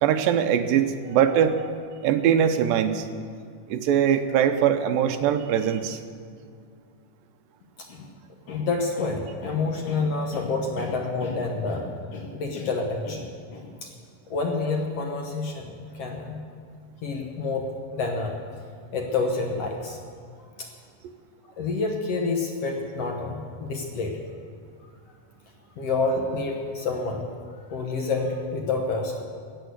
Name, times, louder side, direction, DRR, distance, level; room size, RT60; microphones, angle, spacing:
voice 1, 0.0-3.1 3.7-6.0, right 9 dB, 90° right, 8 dB, 2.5 m, -22 dB
voice 2, 7.8-8.1 8.5-13.3 13.5-13.9 14.3-16.4 17.0-18.4 18.9-20.0 20.6-20.7 21.6-24.2 25.8-27.2 27.7-29.2, left 3 dB, 60° left, 2 dB, 1.7 m, -28 dB
14.5 x 9.3 x 8.0 m, 2.2 s
omnidirectional pair, 3.9 m